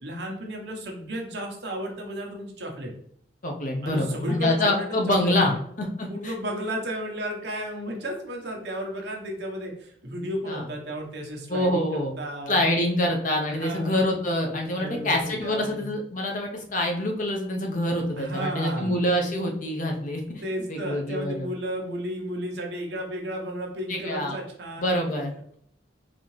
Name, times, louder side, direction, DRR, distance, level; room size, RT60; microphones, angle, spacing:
voice 1, 0.0-2.9 3.8-5.5 6.1-12.6 13.5-14.0 14.5-15.9 18.2-19.0 20.4-24.9, right 1 dB, 65° right, 1 dB, 0.9 m, -33 dB
voice 2, 3.4-6.3 10.5-10.6 11.5-12.1 12.5-20.4 20.7-21.5 23.9-24.4 24.8-25.5, left 1 dB, 45° left, 2 dB, 0.7 m, -26 dB
4.1 x 2.8 x 3.1 m, 0.67 s
head